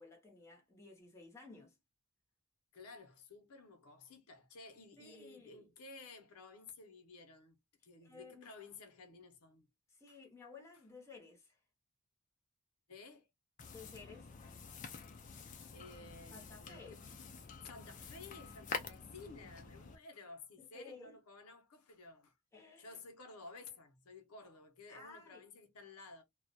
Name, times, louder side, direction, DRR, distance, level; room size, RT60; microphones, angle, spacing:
voice 1, 0.0-1.8 5.0-5.6 8.0-8.5 9.9-11.6 13.7-14.4 16.3-17.0 20.6-21.2 22.5-23.0 24.9-25.4, left 3 dB, 10° left, 0.7 m, -55 dB
voice 2, 2.7-7.6 7.8-9.7 10.1-10.2 12.9-13.3 15.7-17.0 17.6-22.4 22.8-26.2, left 3 dB, 80° left, 0.7 m, -54 dB
sound 1, 13.6-20.0, left 5 dB, 35° left, 0.4 m, -48 dB
2.3 x 2.1 x 2.5 m
head